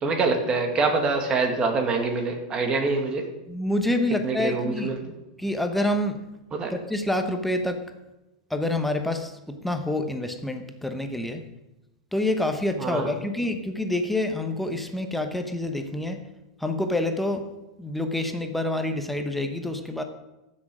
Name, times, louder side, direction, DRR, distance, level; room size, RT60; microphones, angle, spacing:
voice 1, 0.0-3.3 4.2-5.0 6.5-6.7 12.8-13.1, right 3 dB, 30° right, 4 dB, 2.1 m, -25 dB
voice 2, 3.5-4.9 5.4-6.2 6.7-7.8 8.5-11.4 12.1-16.2 16.6-17.5 17.8-20.0, left 1 dB, 5° left, 6 dB, 1.0 m, -27 dB
15.0 x 6.5 x 4.9 m, 1.0 s
hypercardioid pair, 110°, 3 cm